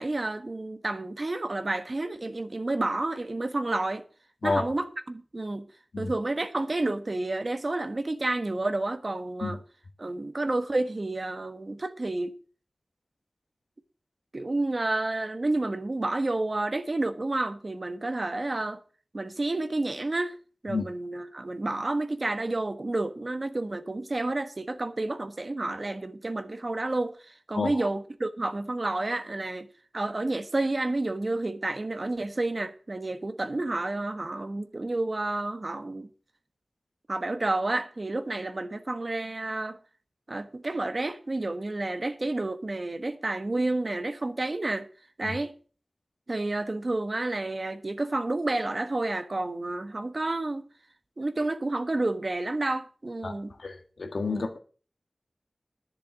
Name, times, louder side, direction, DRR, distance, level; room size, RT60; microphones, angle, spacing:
voice 1, 0.0-4.1 4.4-5.7 6.0-9.6 10.0-12.3 14.3-18.8 19.1-20.4 20.6-29.7 29.9-36.1 37.1-39.8 40.3-44.9 45.2-45.5 46.3-50.7 51.2-53.5 54.3-54.5, right 2 dB, 50° right, 1.3 m, -30 dB
voice 2, 27.5-27.9 45.2-45.3 53.2-53.3 53.6-54.6, left 3 dB, 90° left, 1.7 m, -30 dB
11.0 x 6.9 x 7.2 m
wide cardioid pair, 50°, 0 cm